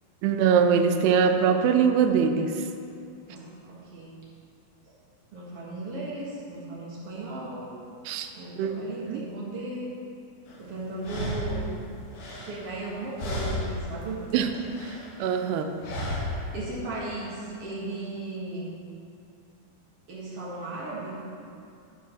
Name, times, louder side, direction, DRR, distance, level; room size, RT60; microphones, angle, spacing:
voice 1, 0.2-2.5 8.1-8.3 8.6-8.8 9.1-9.2 14.3-14.5 15.2-15.7, right 6 dB, 90° right, 6 dB, 2.8 m, -22 dB
voice 2, 3.3-4.1 5.3-7.8 8.4-10.0 10.6-11.7 12.3-14.2 15.2-15.3 16.5-18.7 20.1-21.2, right 2 dB, 55° right, -6 dB, 1.7 m, -36 dB
sound 1, 10.5-10.6 11.0-12.9 13.2-13.9 14.2-15.1 15.8-16.5, left 1 dB, 65° left, 3.4 m, -33 dB
13.0 x 4.7 x 6.1 m, 2.5 s
omnidirectional pair, 4.6 m